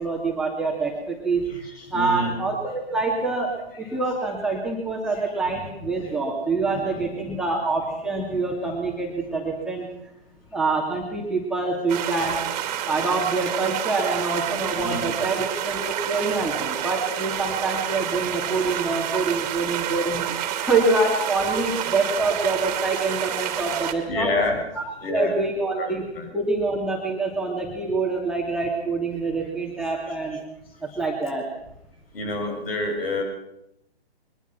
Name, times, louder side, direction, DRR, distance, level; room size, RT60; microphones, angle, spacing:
voice 1, 0.0-1.4 1.9-9.9 10.5-12.4 12.8-24.3 24.8-26.1 26.3-30.4 31.0-31.5, right 3 dB, ahead, -3 dB, 2.7 m, -26 dB
voice 2, 1.8-2.4 3.9-4.0 6.0-6.1 6.7-6.9 8.3-8.7 14.8-15.1 24.1-24.6 25.0-25.3 25.8-26.3 32.1-33.2, left 2 dB, 60° left, 3 dB, 7.6 m, -28 dB
sound 1, 11.9-23.9, right 10 dB, 35° right, 2.8 m, -29 dB
22.5 x 21.5 x 6.0 m, 0.83 s
figure-of-eight pair, 135°, 33 cm